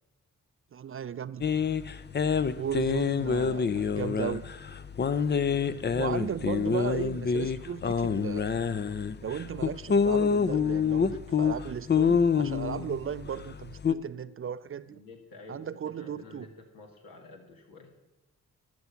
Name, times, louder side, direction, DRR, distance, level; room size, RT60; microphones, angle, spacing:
voice 1, 0.7-1.5 2.6-4.4 6.0-8.6 9.2-15.0 15.5-16.5, right 8 dB, 40° right, 15 dB, 0.4 m, -36 dB
sound 1, 1.4-13.9, left 6 dB, 30° left, 0.5 m, -27 dB
voice 2, 5.5-6.3 14.8-17.9, left 3 dB, 75° left, 2 dB, 2.0 m, -48 dB
12.0 x 5.9 x 5.8 m, 1.1 s
supercardioid pair, 50°, 34 cm